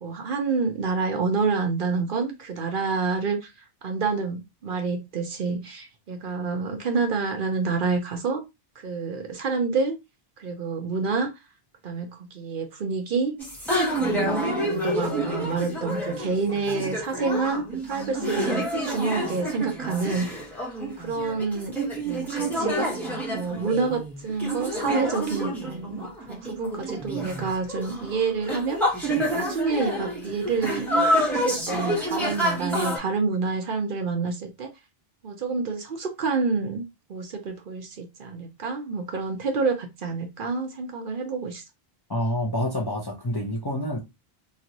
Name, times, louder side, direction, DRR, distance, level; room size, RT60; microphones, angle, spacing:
voice 1, 0.0-3.4 3.8-8.4 8.8-10.0 10.4-11.3 11.8-13.4 14.0-20.3 21.0-21.8 22.0-23.0 23.3-28.8 29.3-30.8 31.2-34.7 35.2-41.6, right 4 dB, 60° right, 0.8 m, -28 dB
sound 1, 13.4-33.0, right 1 dB, ahead, 1.2 m, -28 dB
voice 2, 42.1-44.0, equal, 30° left, 0.5 m, -27 dB
3.0 x 2.5 x 2.9 m
omnidirectional pair, 1.1 m